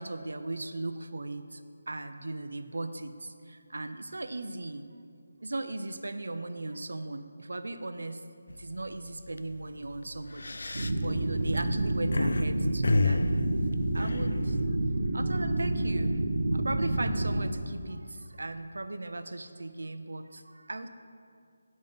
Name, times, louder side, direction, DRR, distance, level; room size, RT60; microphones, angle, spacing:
voice 1, 0.0-1.6 1.9-4.9 5.4-8.2 8.5-14.8 15.1-16.2 16.5-20.9, right 2 dB, 80° right, 9 dB, 0.5 m, -37 dB
sound 1, 8.5-8.8 9.2-9.4 10.1-12.4 12.8-14.6, left 3 dB, 60° left, 0.4 m, -29 dB
sound 2, 10.7-17.4, right 1 dB, 55° right, 0.9 m, -29 dB
9.6 x 5.3 x 5.4 m, 2.3 s
figure-of-eight pair, 180°, 0 cm